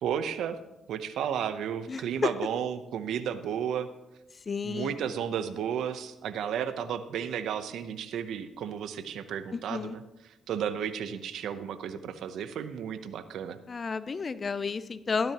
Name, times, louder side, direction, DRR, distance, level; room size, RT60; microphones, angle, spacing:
voice 1, 0.0-0.6 0.9-3.9 4.6-13.6, right 8 dB, 75° right, 11 dB, 0.7 m, -33 dB
voice 2, 1.9-2.3 4.5-5.0 9.7-9.9 13.7-15.3, left 5 dB, 35° left, 15 dB, 0.4 m, -31 dB
13.5 x 12.0 x 2.9 m, 0.96 s
cardioid pair, 90°, 0 cm